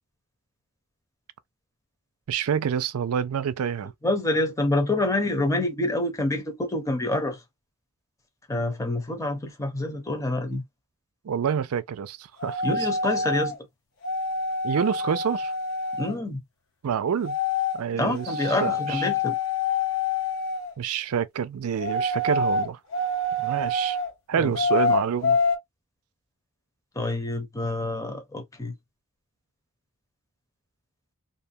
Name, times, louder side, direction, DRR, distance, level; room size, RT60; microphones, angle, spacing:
voice 1, 2.3-3.9 11.2-12.6 14.6-15.5 16.8-17.4 17.7-19.1 20.8-22.8 23.4-24.0 24.3-25.4, right 7 dB, 80° right, 0.4 m, -27 dB
voice 2, 4.0-7.4 8.5-10.6 12.6-13.6 16.0-16.4 18.0-19.4 24.4-24.5 27.0-28.7, left 2 dB, 15° left, 0.7 m, -27 dB
sound 1, 12.4-13.6 14.0-16.1 17.2-17.8 18.2-20.7 21.8-24.1 24.5-25.6, left 3 dB, 70° left, 0.9 m, -26 dB
2.7 x 2.2 x 2.7 m
head